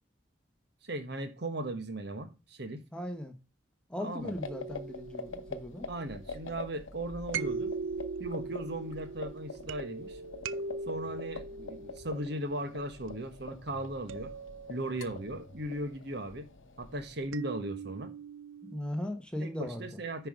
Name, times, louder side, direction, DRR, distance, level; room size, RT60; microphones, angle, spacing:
voice 1, 0.8-2.8 4.0-4.4 5.9-7.7 8.2-10.2 10.9-14.3 14.7-16.5 16.8-18.1 19.4-20.3, right 1 dB, 60° right, 1.3 m, -37 dB
voice 2, 2.9-3.4 3.9-5.9 18.6-20.0, left 1 dB, 5° left, 1.0 m, -38 dB
sound 1, 4.2-17.3, left 3 dB, 85° left, 0.9 m, -46 dB
sound 2, 4.4-6.4 7.3-13.1 14.1-15.4 17.3-18.9, right 4 dB, 85° right, 0.5 m, -40 dB
10.0 x 4.8 x 4.9 m
head